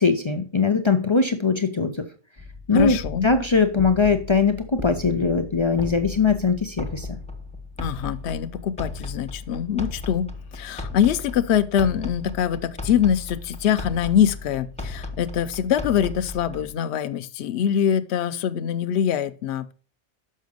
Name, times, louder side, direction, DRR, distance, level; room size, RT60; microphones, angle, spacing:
voice 1, 0.0-2.1 2.7-3.0 3.2-7.1, left 4 dB, 40° left, 0.4 m, -21 dB
sound 1, 2.4-16.7, left 3 dB, 5° left, 0.7 m, -36 dB
voice 2, 2.7-3.3 7.8-19.7, left 9 dB, 70° left, 0.9 m, -24 dB
6.4 x 5.7 x 5.2 m
omnidirectional pair, 1.2 m